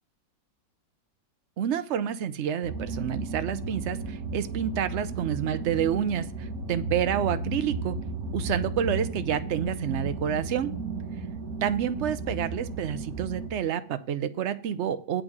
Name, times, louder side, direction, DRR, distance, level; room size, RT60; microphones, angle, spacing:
voice 1, 1.6-8.0 8.3-10.7 11.6-15.2, right 9 dB, 75° right, 11 dB, 0.6 m, -29 dB
sound 1, 2.6-13.5, right 3 dB, 50° right, 1.9 m, -34 dB
8.5 x 6.2 x 6.5 m, 0.44 s
omnidirectional pair, 2.0 m